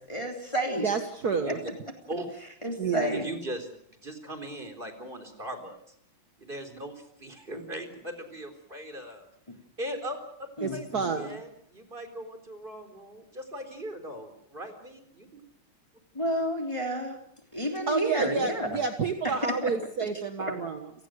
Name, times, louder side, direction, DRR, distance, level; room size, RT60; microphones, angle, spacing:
voice 1, 0.1-0.9 2.6-3.3 7.5-7.6 10.6-11.1 16.1-17.2 17.5-18.8 19.6-19.7 20.0-20.1 20.5-20.6, equal, 15° left, 3 dB, 3.2 m, -30 dB
voice 2, 0.8-1.6 2.8-3.2 10.6-11.4 17.9-20.9, right 5 dB, 50° right, 6 dB, 1.9 m, -29 dB
voice 3, 2.8-5.8 6.4-9.3 9.8-15.4, right 1 dB, 25° right, 8 dB, 4.0 m, -39 dB
30.0 x 18.5 x 6.4 m, 0.71 s
omnidirectional pair, 2.3 m